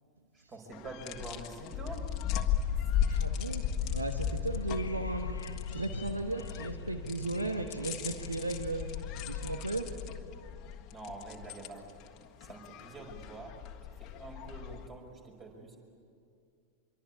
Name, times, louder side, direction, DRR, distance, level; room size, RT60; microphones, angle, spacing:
voice 1, 0.3-2.1 10.9-11.9 12.4-13.6 14.0-15.8, right 2 dB, 25° right, 2 dB, 5.6 m, -46 dB
sound 1, 0.7-14.9, left 9 dB, 35° left, 1.6 m, -36 dB
voice 2, 3.0-5.3 5.7-9.0 9.2-9.9, right 2 dB, 80° right, 6 dB, 1.3 m, -36 dB
Wind / Subway metro underground, 4.5-9.5, left 4 dB, 70° left, 1.0 m, -45 dB
25.5 x 23.5 x 8.7 m, 2.3 s
figure-of-eight pair, 90°, 0 cm